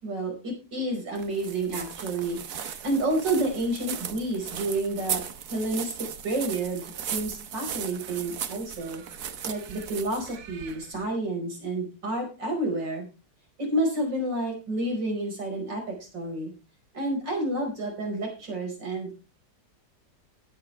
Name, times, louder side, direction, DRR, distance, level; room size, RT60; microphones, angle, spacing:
voice 1, 0.0-5.2 5.5-9.0 9.4-13.1 13.6-16.5 16.9-19.2, right 1 dB, 90° right, 2 dB, 5.6 m, -30 dB
sound 1, 1.2-11.0, right 8 dB, 65° right, 1.5 m, -37 dB
17.5 x 8.5 x 3.3 m, 0.32 s
omnidirectional pair, 1.9 m